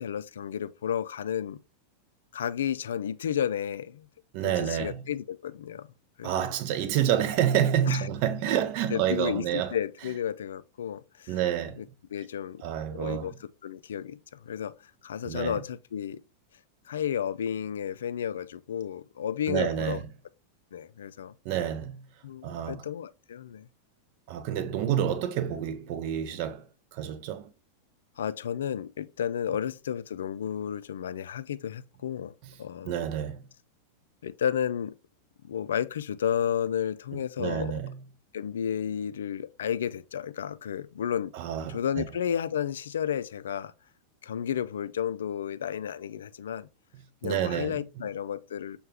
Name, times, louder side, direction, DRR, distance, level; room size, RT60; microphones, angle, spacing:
voice 1, 0.0-1.6 2.3-4.1 4.4-5.9 6.2-6.5 7.8-8.1 8.9-11.4 11.8-11.9 12.1-12.6 12.9-13.3 13.6-16.2 16.9-20.0 20.7-21.4 22.2-23.7 28.2-32.3 32.6-33.1 34.2-34.9 35.4-37.8 38.3-41.3 41.7-43.7 44.2-46.7 47.2-48.8, left 9 dB, 65° left, 0.3 m, -32 dB
voice 2, 4.3-5.0 6.2-9.7 11.3-11.8 12.6-13.3 15.2-15.6 19.5-20.0 21.4-22.0 22.4-22.8 24.3-26.6 26.9-27.5 32.9-33.4 37.1-38.0 41.3-42.0 47.2-47.8, right 10 dB, 45° right, 0.6 m, -28 dB
6.5 x 2.3 x 3.3 m
figure-of-eight pair, 90°, 0 cm